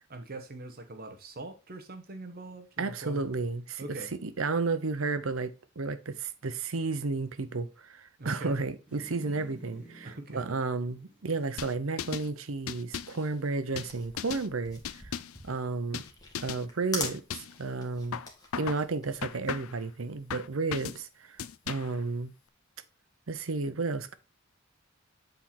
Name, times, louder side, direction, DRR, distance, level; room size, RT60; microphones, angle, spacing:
voice 1, 0.1-3.2 3.8-4.1 8.2-8.6 10.0-10.5, right 2 dB, 45° right, 1.0 m, -42 dB
voice 2, 2.8-15.0 15.4-16.0 16.4-18.2 18.5-21.4 21.7-22.3 23.3-24.1, right 3 dB, 75° right, 0.8 m, -32 dB
sound 1, 8.9-12.2 12.6-12.7, right 1 dB, 5° right, 2.7 m, -52 dB
sound 2, 11.6-12.3 12.7-13.2 13.8-14.5 14.8-15.4 15.9-16.1 16.3-16.6 17.0-17.6 18.1-18.8 19.2-19.8 20.3-21.0 21.4-22.0, left 8 dB, 85° left, 0.5 m, -37 dB
sound 3, 13.9-20.4, left 3 dB, 20° left, 2.1 m, -42 dB
8.1 x 4.4 x 4.2 m
head